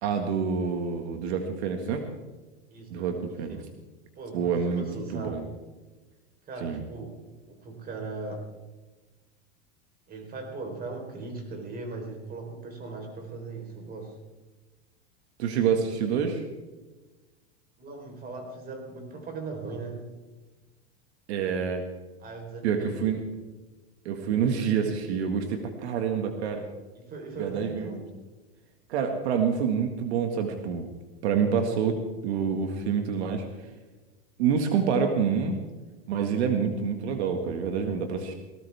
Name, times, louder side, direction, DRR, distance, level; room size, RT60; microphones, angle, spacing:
voice 1, 0.0-2.1 2.9-3.6 4.3-4.8 5.1-5.4 6.6-6.8 15.4-16.4 21.3-21.8 22.6-23.2 24.1-26.6 27.4-28.0 28.9-30.9 31.2-33.5 34.4-35.6 36.1-38.3, right 6 dB, 75° right, 5 dB, 2.0 m, -27 dB
voice 2, 2.7-3.7 4.2-5.4 6.5-7.2 7.5-8.5 10.1-14.2 17.8-20.0 22.2-23.0 26.9-28.0 31.6-31.8, right 3 dB, 25° right, 3 dB, 4.3 m, -39 dB
19.0 x 18.0 x 3.6 m, 1.2 s
supercardioid pair, 135°, 33 cm